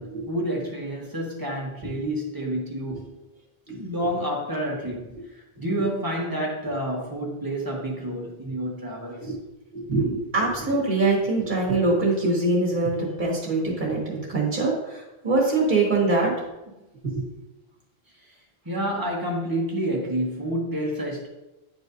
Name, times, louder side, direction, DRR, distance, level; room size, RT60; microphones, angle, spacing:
voice 1, 0.0-3.1 3.7-9.3 18.2-18.3 18.6-21.3, right 1 dB, 20° right, -2 dB, 1.3 m, -29 dB
voice 2, 9.7-16.3 17.1-17.2, right 2 dB, 50° right, -3 dB, 1.8 m, -23 dB
9.3 x 4.8 x 2.6 m, 1.0 s
omnidirectional pair, 1.1 m